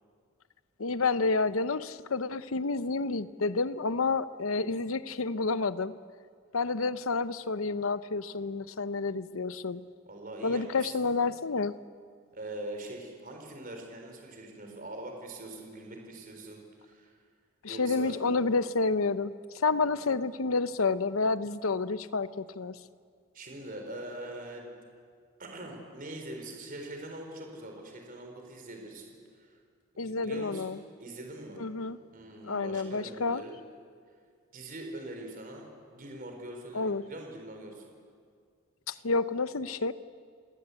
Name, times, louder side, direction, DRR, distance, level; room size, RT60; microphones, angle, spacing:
voice 1, 0.8-5.9 6.5-9.8 10.4-11.7 17.6-22.8 30.0-30.8 31.6-32.0 32.4-33.4 36.7-37.0 38.9-39.9, left 3 dB, 80° left, 14 dB, 0.8 m, -29 dB
voice 2, 10.1-11.1 12.3-17.1 17.7-18.1 23.3-24.8 25.4-29.5 30.0-30.7 31.0-31.6 32.1-33.6 34.5-35.7 35.9-37.8, right 1 dB, 40° right, 3 dB, 4.1 m, -43 dB
29.5 x 18.0 x 8.4 m, 2.1 s
head